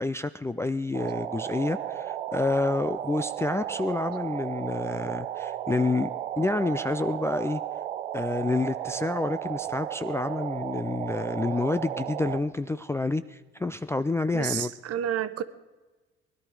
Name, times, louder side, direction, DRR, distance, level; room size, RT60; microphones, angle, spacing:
voice 1, 0.0-6.1 6.4-7.6 8.1-14.7, left 2 dB, 10° left, 10 dB, 0.4 m, -28 dB
sound 1, 0.9-12.4, right 11 dB, 90° right, 0.6 m, -34 dB
voice 2, 14.3-15.4, right 10 dB, 50° right, 13 dB, 1.0 m, -30 dB
20.0 x 11.5 x 4.8 m, 1.2 s
hypercardioid pair, 55°, 32 cm